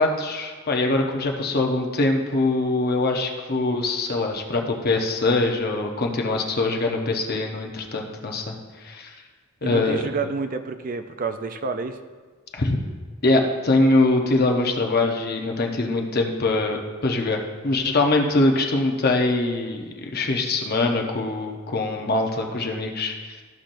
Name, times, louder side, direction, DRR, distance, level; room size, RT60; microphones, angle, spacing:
voice 1, 0.0-8.5 8.8-9.1 9.6-10.1 12.6-12.8 13.2-23.4, left 2 dB, 45° left, 2 dB, 0.9 m, -23 dB
voice 2, 9.6-12.0, right 4 dB, 40° right, 8 dB, 0.4 m, -29 dB
13.5 x 5.8 x 2.6 m, 1.5 s
head